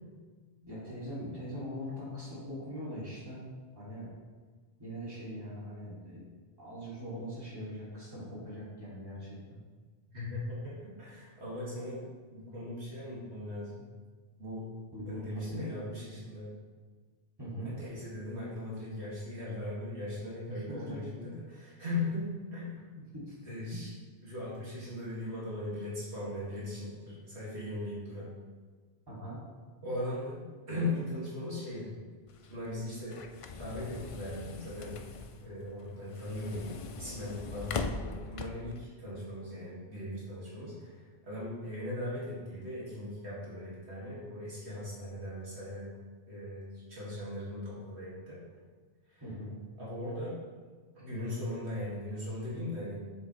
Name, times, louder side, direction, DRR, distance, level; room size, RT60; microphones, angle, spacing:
voice 1, 0.6-3.4 3.7-4.1 4.8-6.2 6.6-9.6 14.9-15.7 17.4-17.7 20.5-21.0 23.1-23.3 29.1-29.4 49.2-49.5, equal, 20° right, -8 dB, 2.5 m, -41 dB
voice 2, 10.1-12.0 12.3-13.8 14.4-14.6 15.1-16.5 17.6-22.8 23.5-23.9 24.2-28.3 29.8-31.9 32.5-33.2 33.6-35.0 35.4-45.9 46.3-48.4 49.1-49.2 49.8-50.4 50.9-53.0, left 1 dB, 80° right, -8 dB, 2.5 m, -39 dB
sound 1, 32.3-38.8, left 4 dB, 60° left, 0.3 m, -41 dB
7.5 x 7.0 x 3.2 m, 1.5 s
omnidirectional pair, 1.1 m